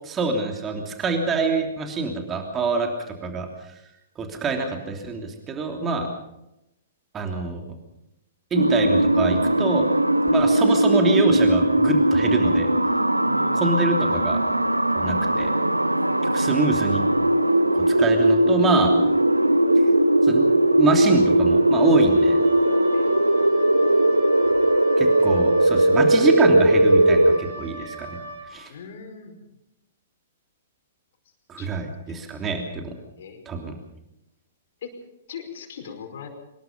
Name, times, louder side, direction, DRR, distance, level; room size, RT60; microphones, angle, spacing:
voice 1, 0.1-3.5 4.2-6.1 7.1-7.8 8.5-9.8 10.3-12.7 13.5-14.4 14.9-15.5 16.3-17.0 18.0-18.9 20.2-22.4 25.0-28.2 28.5-28.7 31.5-32.9 33.5-33.8, right 4 dB, 20° right, 3 dB, 3.1 m, -25 dB
sound 1, 8.6-27.4, right 1 dB, 85° right, 1.0 m, -19 dB
voice 2, 13.2-13.6 16.1-16.2 22.9-23.1 28.7-29.4 31.6-31.7 33.2-33.5 34.8-34.9 35.3-36.3, left 7 dB, 50° left, 4 dB, 5.1 m, -39 dB
Wind instrument woodwind instrument, 21.8-28.5, right 2 dB, 65° right, 6.4 m, -37 dB
24.5 x 20.5 x 5.3 m, 0.87 s
figure-of-eight pair, 110°, 0 cm